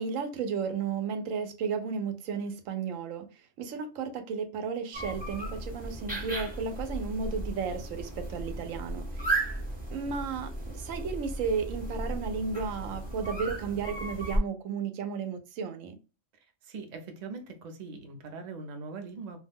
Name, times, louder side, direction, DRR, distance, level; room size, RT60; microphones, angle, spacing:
voice 1, 0.0-3.3 3.6-9.5 9.9-15.9, right 5 dB, 85° right, 1.0 m, -34 dB
sound 1, 4.9-14.4, right 1 dB, 10° right, 0.7 m, -35 dB
voice 2, 16.6-19.4, right 4 dB, 50° right, 0.5 m, -41 dB
2.4 x 2.1 x 3.4 m
omnidirectional pair, 1.3 m